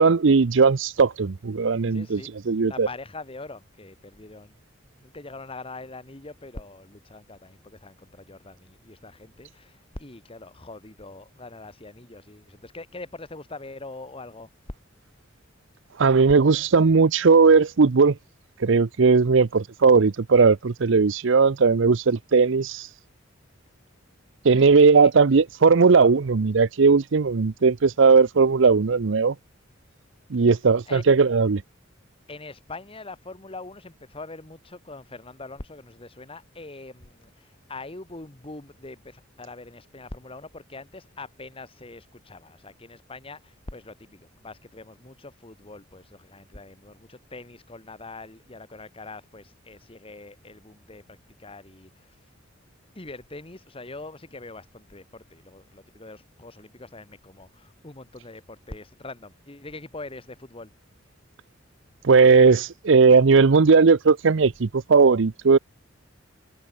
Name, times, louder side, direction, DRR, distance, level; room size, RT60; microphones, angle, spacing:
voice 1, 0.0-2.2 2.5-2.9 16.0-18.2 18.6-22.9 24.4-29.4 30.3-31.6 62.0-65.6, right 4 dB, 65° right, 0.6 m, -18 dB
voice 2, 1.9-2.3 2.7-4.5 5.0-14.5 24.5-24.6 25.0-25.1 30.8-31.0 32.3-52.3 52.9-60.7, left 2 dB, 30° left, 1.6 m, -43 dB
head